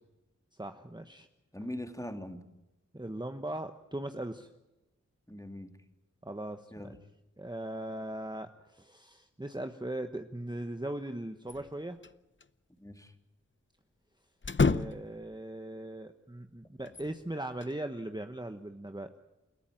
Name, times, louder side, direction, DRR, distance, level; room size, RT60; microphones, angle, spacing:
voice 1, 0.6-1.3 2.9-4.5 6.2-6.9 7.4-12.0 14.6-19.1, right 1 dB, 15° right, 7 dB, 1.2 m, -39 dB
voice 2, 1.5-2.4 5.3-5.8 6.7-7.0 12.8-13.1, left 1 dB, 10° left, 6 dB, 2.7 m, -41 dB
sound 1, 11.5-12.1 12.4-12.5 14.4-15.3 16.8-17.8, left 4 dB, 40° left, 0.7 m, -30 dB
29.5 x 14.0 x 9.1 m, 0.99 s
wide cardioid pair, 45°, 30 cm